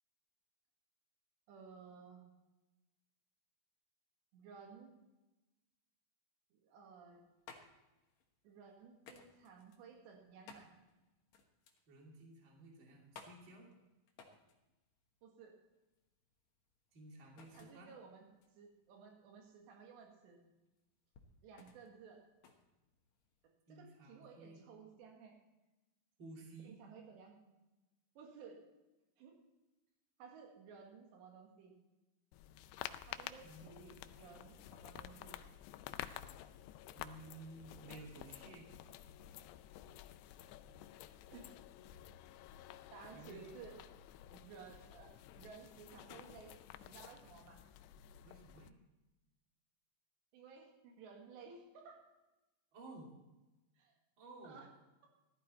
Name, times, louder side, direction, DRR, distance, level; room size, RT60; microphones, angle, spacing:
voice 1, 1.5-2.2 4.3-4.9 6.5-7.2 8.4-10.7 15.2-15.5 17.6-18.3 18.6-20.4 21.4-22.2 23.7-25.4 26.6-27.5 28.2-28.6 29.2-29.3 30.2-31.7 33.1-35.4 41.3-41.5 42.9-43.8 44.3-45.1 45.4-47.6 50.3-52.0 53.8-54.0 54.4-54.7, right 5 dB, 90° right, 1 dB, 4.1 m, -56 dB
sound 1, 6.9-23.5, left 5 dB, 65° left, 1.8 m, -62 dB
voice 2, 11.9-13.7 16.9-17.9 23.7-24.7 26.2-26.8 33.4-33.7 36.9-38.7 43.1-43.6 48.2-48.8 52.7-53.1 54.2-54.6, right 2 dB, 35° right, -1 dB, 2.8 m, -54 dB
sound 2, 32.3-48.7, left 12 dB, 85° left, 2.7 m, -52 dB
15.0 x 12.5 x 4.3 m, 1.0 s
omnidirectional pair, 4.9 m